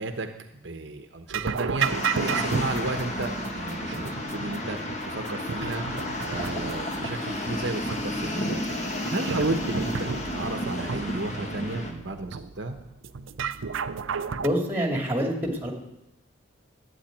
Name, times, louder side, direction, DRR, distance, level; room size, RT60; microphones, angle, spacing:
voice 1, 0.0-1.9 2.2-4.0 4.3-4.8 5.1-5.8 6.2-8.7 9.1-12.8, right 2 dB, 60° right, 6 dB, 1.0 m, -33 dB
sound 1, 1.3-14.5, right 6 dB, 80° right, 0.6 m, -33 dB
sound 2, 1.8-11.9, left 1 dB, 35° left, 1.8 m, -32 dB
voice 2, 14.3-15.7, equal, 10° right, 1 dB, 2.4 m, -26 dB
12.0 x 9.3 x 9.1 m, 0.88 s
head